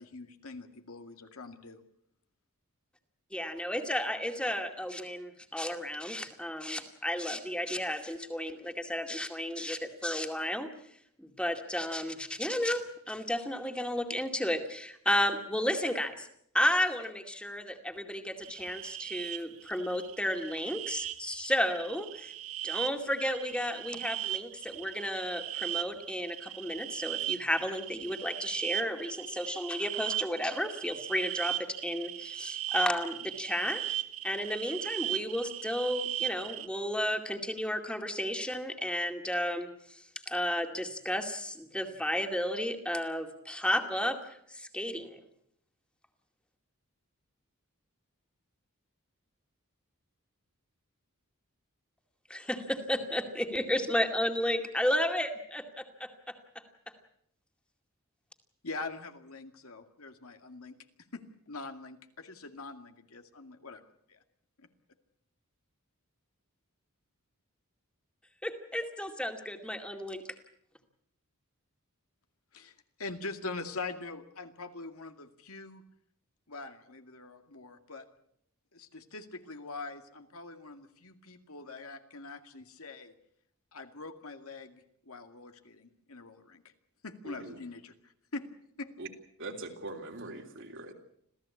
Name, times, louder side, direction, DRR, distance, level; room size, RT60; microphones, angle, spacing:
voice 1, 0.0-1.8 58.6-60.7 61.1-61.2 61.5-64.2 64.6-64.7 72.5-72.7 73.0-75.8 76.5-78.1 78.7-83.1 83.7-86.6 87.0-88.4 88.8-88.9, left 3 dB, 75° left, 6 dB, 2.3 m, -43 dB
voice 2, 3.3-10.7 11.2-16.3 16.5-22.3 22.6-33.8 34.2-44.2 44.5-45.2 52.3-56.3 68.4-70.2, left 1 dB, 5° left, 5 dB, 2.3 m, -33 dB
sound 1, 18.4-36.7, right 13 dB, 75° right, 1.4 m, -38 dB
voice 3, 87.2-87.6 89.0-89.1 89.4-90.9, right 2 dB, 55° right, 3 dB, 3.3 m, -42 dB
27.0 x 16.5 x 8.5 m, 0.73 s
head